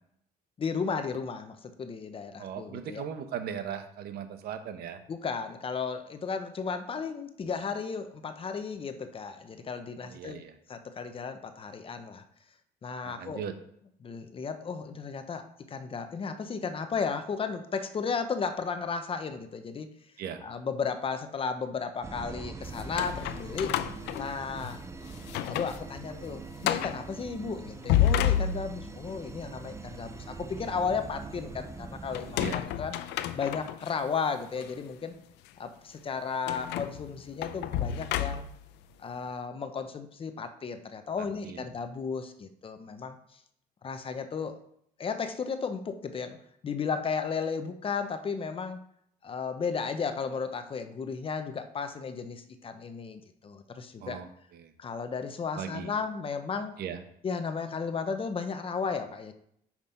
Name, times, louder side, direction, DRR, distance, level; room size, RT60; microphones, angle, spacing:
voice 1, 0.6-3.0 5.1-10.4 10.7-12.2 12.8-13.4 14.0-19.9 20.4-23.8 24.1-24.8 25.4-33.0 33.4-35.2 35.6-38.5 39.0-43.2 43.8-44.6 45.0-46.4 46.6-48.8 49.2-54.2 54.8-56.8 57.2-59.3, left 5 dB, 30° left, 9 dB, 0.7 m, -34 dB
voice 2, 2.4-5.0 10.0-10.5 13.0-13.6 20.2-20.4 32.4-32.6 41.4-41.7 54.0-54.7 55.6-55.9 56.8-57.0, right 8 dB, 70° right, 9 dB, 0.9 m, -38 dB
sound 1, 22.0-32.6, right 4 dB, 15° right, 0.5 m, -43 dB
sound 2, 22.7-24.8 25.2-25.8 26.1-26.2 26.6-27.0 27.7-29.0 32.1-33.9 34.6-34.7 36.5-38.7, left 10 dB, 85° left, 0.5 m, -30 dB
5.9 x 5.2 x 4.3 m, 0.71 s
cardioid pair, 110°, 17 cm